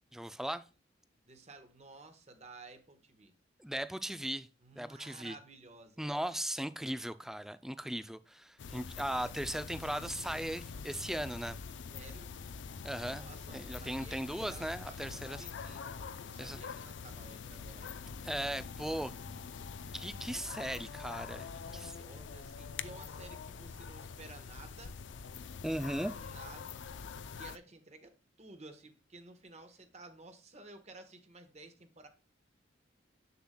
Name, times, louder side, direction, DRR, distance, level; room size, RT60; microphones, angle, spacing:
voice 1, 0.1-0.6 3.6-4.5 4.8-5.4 6.0-11.6 12.8-13.3 13.5-15.4 16.4-16.6 18.2-19.1 19.9-21.9 25.6-26.1, right 1 dB, ahead, 0.3 m, -38 dB
voice 2, 1.3-3.3 4.6-6.1 11.9-12.3 13.1-15.8 16.2-17.9 21.5-24.9 26.1-26.8 27.4-32.1, right 3 dB, 35° right, 1.1 m, -54 dB
sound 1, 8.6-27.6, left 5 dB, 75° left, 0.5 m, -45 dB
7.8 x 6.9 x 2.2 m
head